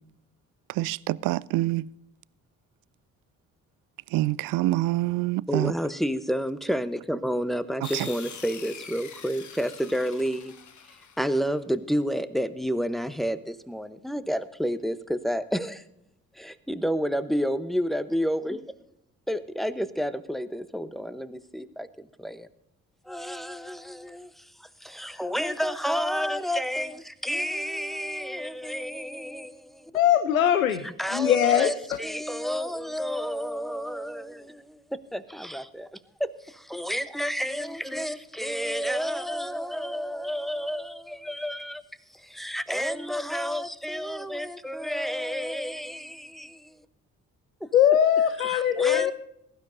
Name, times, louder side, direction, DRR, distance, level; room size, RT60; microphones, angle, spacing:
voice 1, 0.7-1.9 4.1-5.7 7.9-8.1, right 17 dB, 55° right, 0.5 m, -26 dB
voice 2, 5.5-10.5 11.2-15.8 16.4-18.6 19.3-22.5 23.0-29.9 30.8-34.8 35.1-35.9 36.2-41.8 42.1-46.8 48.4-49.1, equal, ahead, 0.9 m, -30 dB
sound 1, 7.8-11.5, left 6 dB, 45° left, 1.3 m, -44 dB
voice 3, 29.9-30.9 31.1-32.0 47.7-49.1, left 10 dB, 85° left, 0.6 m, -21 dB
21.0 x 12.0 x 2.7 m
figure-of-eight pair, 40°, 41 cm